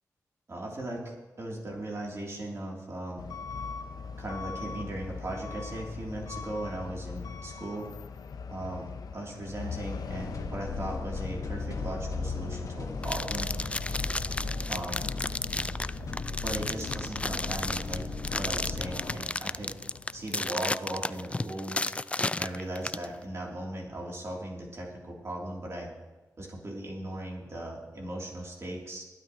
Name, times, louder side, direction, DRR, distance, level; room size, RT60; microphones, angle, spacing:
voice 1, 0.5-3.3 4.2-7.9 8.5-13.5 14.7-15.1 16.4-18.0 18.4-19.7 20.1-21.8 22.4-25.9 26.4-29.0, right 1 dB, 45° right, -2 dB, 3.2 m, -38 dB
Truck / Alarm, 3.2-20.4, left 6 dB, 70° left, 0.8 m, -41 dB
sound 1, 10.1-19.2, left 2 dB, 55° left, 1.7 m, -37 dB
sound 2, 13.0-23.1, left 2 dB, 20° left, 0.3 m, -33 dB
25.0 x 9.0 x 3.1 m, 1.2 s
cardioid pair, 50°, 7 cm